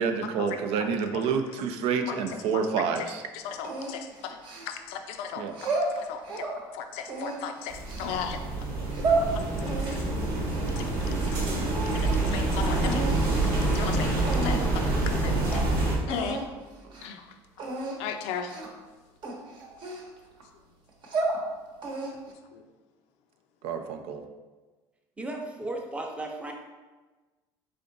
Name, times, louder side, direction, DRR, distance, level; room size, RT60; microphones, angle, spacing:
voice 1, 0.0-3.2 5.4-5.5 23.6-24.2, right 6 dB, 70° right, 7 dB, 0.5 m, -28 dB
voice 2, 2.1-2.6 3.0-3.1 3.3-4.4 4.7-6.4 6.7-8.4 9.3-10.0 10.8-10.9 11.2-11.4 11.9-13.0 13.4-14.1 14.4-15.6 16.1-16.4 16.9-17.2 18.0-18.5 22.5-22.6, left 7 dB, 80° left, 6 dB, 0.5 m, -37 dB
sound 1, 3.6-5.0 5.5-6.6 7.0-8.1 8.7-9.3 9.7-11.4 11.7-12.3 12.8-13.2 13.8-13.9 14.2-14.8 15.2-15.3 15.5-15.7 16.1-16.5 16.8-17.1 17.6-18.0 18.5-18.8 19.2-20.4 20.9-21.4 21.8-22.3, right 3 dB, 55° right, 1.0 m, -32 dB
sound 2, 7.7-16.0, right 2 dB, 90° right, 1.2 m, -27 dB
voice 3, 25.2-26.5, right 2 dB, 10° right, 1 dB, 0.7 m, -35 dB
3.8 x 3.4 x 3.9 m, 1.3 s
supercardioid pair, 100°, 10 cm